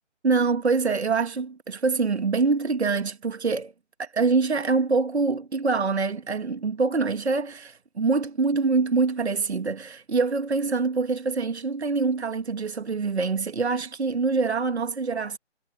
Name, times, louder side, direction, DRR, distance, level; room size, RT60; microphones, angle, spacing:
voice 1, 0.2-3.7 4.0-15.4, right 4 dB, 65° right, 1.8 m, -25 dB
figure-of-eight pair, 155°, 36 cm